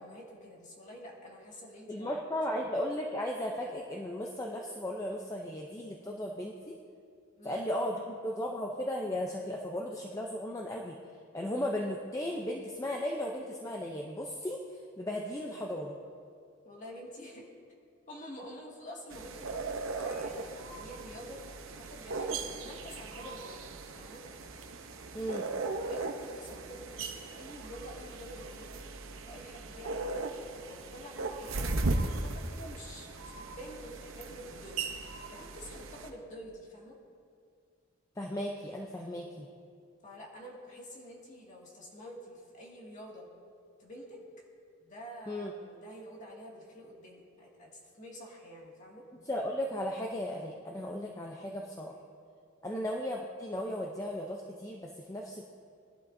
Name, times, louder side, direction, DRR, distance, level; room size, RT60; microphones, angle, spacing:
voice 1, 0.0-2.7 7.4-7.6 15.4-15.5 16.6-17.5 18.1-21.4 21.8-23.6 23.9-24.2 25.7-28.8 29.2-30.3 30.6-31.8 32.2-34.8 35.3-37.0 40.0-43.3 43.8-44.2 44.8-49.1 52.7-52.9, equal, 35° left, -3 dB, 2.1 m, -48 dB
voice 2, 1.9-6.8 7.4-11.0 11.3-14.6 15.0-16.0 25.1-25.5 38.2-39.5 45.3-45.5 49.3-51.9 52.6-55.4, left 1 dB, 15° left, 0 dB, 0.6 m, -36 dB
sound 1, 19.1-36.1, right 3 dB, 75° right, 0.8 m, -38 dB
20.0 x 11.5 x 2.7 m, 2.3 s
head